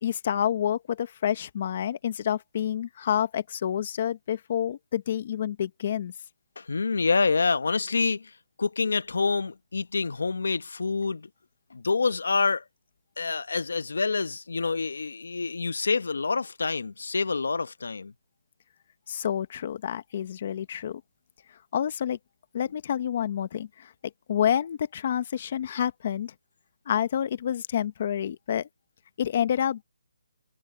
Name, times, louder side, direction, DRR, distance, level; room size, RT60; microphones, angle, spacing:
voice 1, 0.0-6.1 19.1-21.0 21.7-22.2 22.5-23.9 24.3-26.3 26.9-28.7 29.2-29.8, left 9 dB, 35° left, 1.0 m, -28 dB
voice 2, 6.6-8.3 8.6-11.3 11.7-12.6 13.2-18.1, left 4 dB, 80° left, 1.2 m, -27 dB
hypercardioid pair, 170°, 0 cm